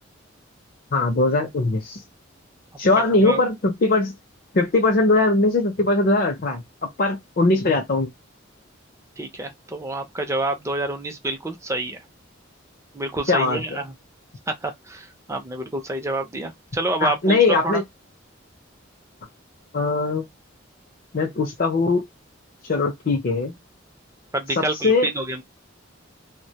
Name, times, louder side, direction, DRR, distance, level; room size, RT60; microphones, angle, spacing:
voice 1, 0.9-2.0 2.8-4.1 4.5-6.6 7.0-8.1 13.3-13.6 17.0-17.8 19.7-20.3 21.1-22.0 22.6-23.5 24.6-25.1, left 3 dB, 50° left, 0.5 m, -20 dB
voice 2, 9.2-12.0 12.9-13.9 14.5-17.8 24.3-25.4, right 2 dB, 15° right, 0.5 m, -28 dB
2.1 x 2.1 x 2.8 m
head